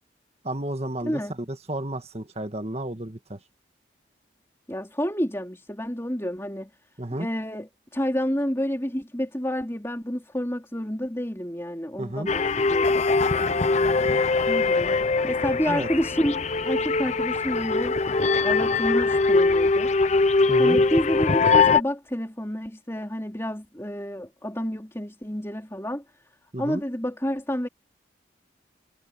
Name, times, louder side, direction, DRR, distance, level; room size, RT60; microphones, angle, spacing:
voice 1, 0.4-1.2 1.5-3.4 7.0-7.3 12.0-12.3 15.7-15.9 20.5-20.8 26.5-26.8, right 1 dB, 35° right, 1.8 m, -31 dB
voice 2, 1.0-1.3 4.7-6.7 7.1-13.0 14.5-19.9 20.6-26.0 26.6-27.7, equal, 15° left, 3.9 m, -29 dB
sound 1, 12.3-21.8, left 3 dB, 35° left, 0.7 m, -22 dB
head